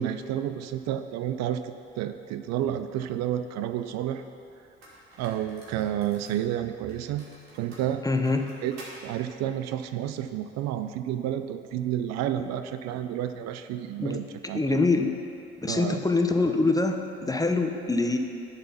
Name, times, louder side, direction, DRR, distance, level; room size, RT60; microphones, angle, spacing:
voice 1, 0.0-4.2 5.2-7.2 7.5-8.0 8.6-14.6 15.7-16.0, right 11 dB, 60° right, 10 dB, 0.5 m, -30 dB
sound 1, 4.8-6.5 6.9-9.0, right 2 dB, 80° right, 1.8 m, -49 dB
voice 2, 8.0-8.5 12.4-12.5 14.0-14.2 14.5-15.2 15.6-18.2, left 3 dB, 10° left, 5 dB, 0.7 m, -24 dB
10.5 x 4.1 x 5.7 m, 2.7 s
hypercardioid pair, 50°, 30 cm